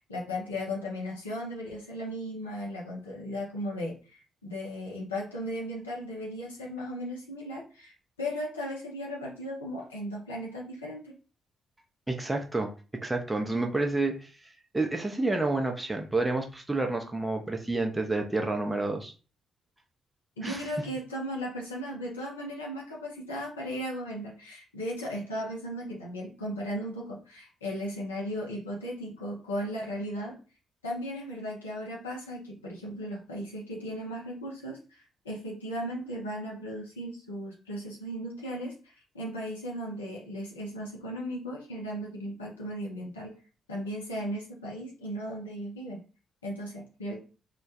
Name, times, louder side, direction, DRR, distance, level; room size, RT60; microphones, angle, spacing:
voice 1, 0.0-11.1 20.4-30.4 30.8-43.4 43.7-46.1 46.4-47.2, equal, 80° left, -3 dB, 0.5 m, -36 dB
voice 2, 12.1-12.7 13.0-14.3 14.7-19.1 20.4-20.7, right 2 dB, 15° right, 3 dB, 0.5 m, -29 dB
2.1 x 2.1 x 2.7 m, 0.35 s
figure-of-eight pair, 40°, 0 cm